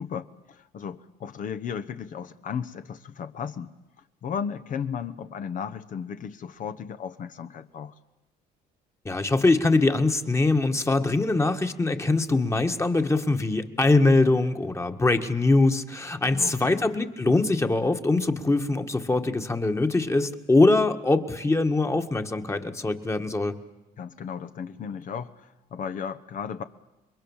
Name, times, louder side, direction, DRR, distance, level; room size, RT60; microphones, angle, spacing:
voice 1, 0.0-3.7 4.2-7.9 16.3-16.8 24.0-26.6, left 7 dB, 50° left, 9 dB, 1.1 m, -35 dB
voice 2, 9.0-23.5, left 2 dB, 15° left, 7 dB, 1.7 m, -23 dB
27.5 x 22.5 x 7.3 m, 1.0 s
cardioid pair, 110°, 17 cm